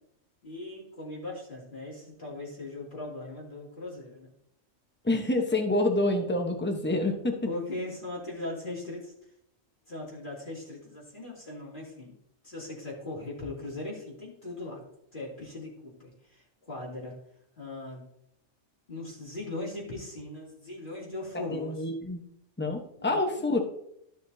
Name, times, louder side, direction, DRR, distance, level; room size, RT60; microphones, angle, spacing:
voice 1, 0.4-4.3 7.4-9.1 9.9-12.1 12.4-14.8 15.1-17.2 17.6-18.0 18.9-21.8 23.0-23.5, left 2 dB, 40° left, -6 dB, 3.1 m, -39 dB
voice 2, 5.0-7.5 21.5-22.2 22.6-23.6, left 2 dB, 10° left, 4 dB, 1.0 m, -27 dB
13.0 x 6.2 x 2.8 m, 0.74 s
omnidirectional pair, 1.4 m